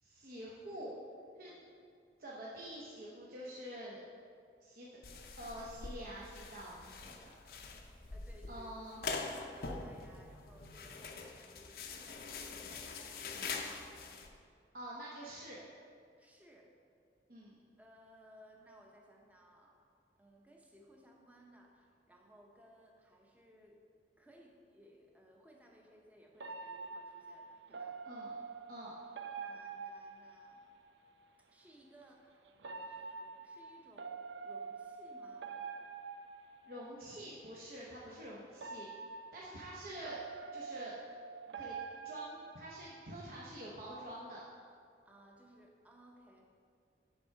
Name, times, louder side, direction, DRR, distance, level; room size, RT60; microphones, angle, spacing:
voice 1, 0.0-0.9 1.4-1.5 2.2-4.0 4.6-4.9 5.4-7.3 8.5-9.0 14.7-15.6 17.3-17.5 28.0-28.3 28.7-28.9 36.7-38.9 39.3-40.2 40.5-41.0 41.5-41.8 42.0-44.5, right 1 dB, 55° right, -6 dB, 0.9 m, -47 dB
sound 1, 5.0-14.3, left 4 dB, 55° left, 0.6 m, -44 dB
voice 2, 8.1-14.0 16.2-16.8 17.8-19.9 20.2-23.8 24.2-28.1 29.4-30.6 31.5-34.2 34.4-35.5 45.0-46.5, equal, 10° right, 0 dB, 0.8 m, -61 dB
sound 2, 26.4-31.0 32.6-37.2 38.5-43.2, right 5 dB, 85° right, 0.5 m, -46 dB
7.2 x 4.7 x 5.7 m, 2.3 s
head